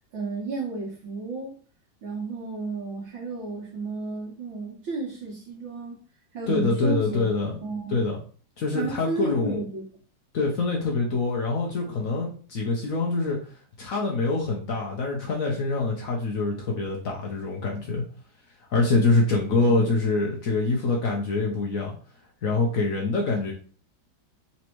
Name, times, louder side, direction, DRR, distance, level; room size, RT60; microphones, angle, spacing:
voice 1, 0.1-1.6 2.0-6.0 6.3-7.2 7.6-8.0 8.7-9.8 19.7-19.9, right 3 dB, 90° right, -6 dB, 1.9 m, -32 dB
voice 2, 6.5-7.5 7.9-8.2 8.6-9.6 10.3-13.4 13.8-18.0 18.7-21.9 22.4-23.5, left 3 dB, 60° left, -1 dB, 0.9 m, -25 dB
4.1 x 3.3 x 3.0 m, 0.41 s
omnidirectional pair, 2.1 m